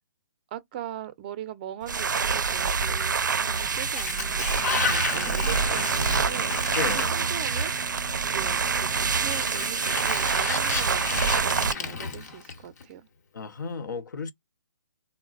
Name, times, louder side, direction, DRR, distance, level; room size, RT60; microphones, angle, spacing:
voice 1, 0.5-13.1, right 11 dB, 30° right, 0.5 m, -40 dB
sound 1, 1.8-11.7, right 5 dB, 90° right, 0.4 m, -26 dB
Sliding door, 3.4-8.0 9.1-12.8, left 5 dB, 60° left, 1.0 m, -33 dB
sound 2, 5.0-10.3, left 4 dB, 30° left, 0.7 m, -45 dB
voice 2, 6.7-7.1 13.3-14.3, left 5 dB, 80° left, 0.7 m, -33 dB
3.7 x 2.0 x 2.3 m
hypercardioid pair, 150°, 10 cm